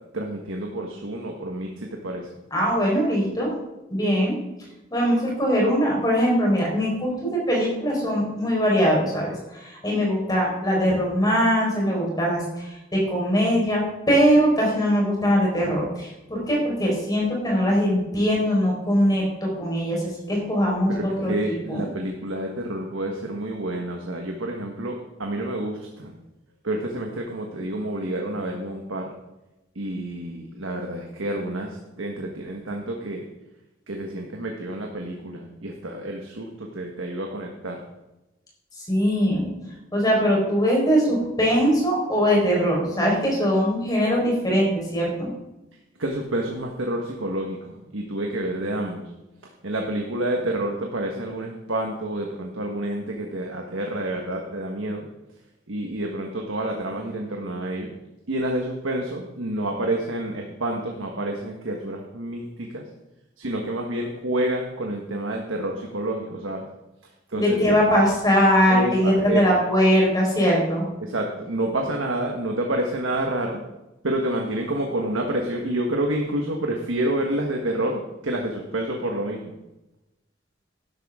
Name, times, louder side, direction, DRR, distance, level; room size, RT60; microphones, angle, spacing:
voice 1, 0.1-2.3 20.9-26.1 26.6-29.0 29.7-33.2 33.9-37.8 46.0-49.1 49.6-55.0 55.7-57.9 58.3-62.8 63.4-66.6 67.3-67.6 68.7-69.6 71.0-73.6 74.0-79.5, right 1 dB, 85° right, 1 dB, 1.4 m, -28 dB
voice 2, 2.5-3.5 3.9-4.3 4.9-21.8 38.9-39.5 39.9-45.3 67.4-70.8, equal, 20° left, -3 dB, 4.5 m, -21 dB
12.5 x 11.0 x 3.7 m, 0.98 s
head